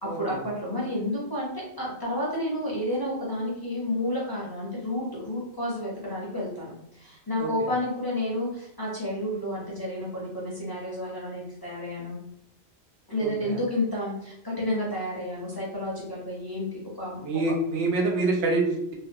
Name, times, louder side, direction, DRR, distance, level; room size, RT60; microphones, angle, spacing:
voice 1, 0.0-12.2 13.1-17.2, left 1 dB, 25° left, -6 dB, 0.5 m, -31 dB
voice 2, 13.2-13.6 17.2-18.9, right 2 dB, 90° right, 0 dB, 0.9 m, -26 dB
2.5 x 2.3 x 2.6 m, 0.74 s
omnidirectional pair, 1.1 m